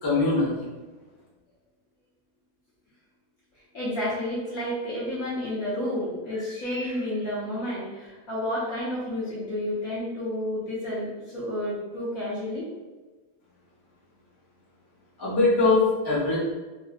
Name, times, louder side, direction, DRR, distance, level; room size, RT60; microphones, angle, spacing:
voice 1, 0.0-0.5 15.2-16.4, left 3 dB, 20° left, -9 dB, 0.7 m, -22 dB
voice 2, 3.7-12.7, left 1 dB, 60° left, -9 dB, 1.1 m, -30 dB
3.8 x 2.2 x 2.4 m, 1.3 s
omnidirectional pair, 2.1 m